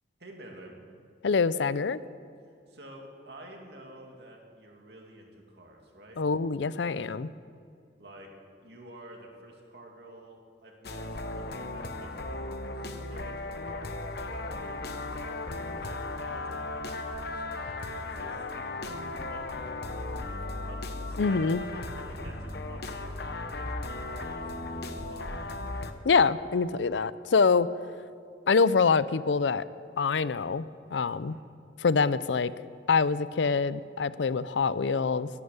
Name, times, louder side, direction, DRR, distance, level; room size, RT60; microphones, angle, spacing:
voice 1, 0.2-0.8 2.7-6.2 8.0-8.3 8.6-12.1 12.7-13.9 14.2-15.9 16.2-17.6 18.0-18.5 18.9-19.4 20.5-24.4 24.8-25.4 31.3-31.5, right 1 dB, 65° right, 0 dB, 2.7 m, -50 dB
voice 2, 1.2-2.0 6.2-7.3 21.2-21.6 26.0-27.7 28.5-29.6 30.0-30.7 30.9-31.4 31.8-32.5 32.9-35.3, left 5 dB, 85° left, 16 dB, 0.5 m, -25 dB
sound 1, 10.8-25.9, left 2 dB, 60° left, 1.0 m, -36 dB
sound 2, 19.9-25.1, right 1 dB, 30° right, 2.6 m, -51 dB
13.0 x 11.0 x 9.6 m, 2.5 s
head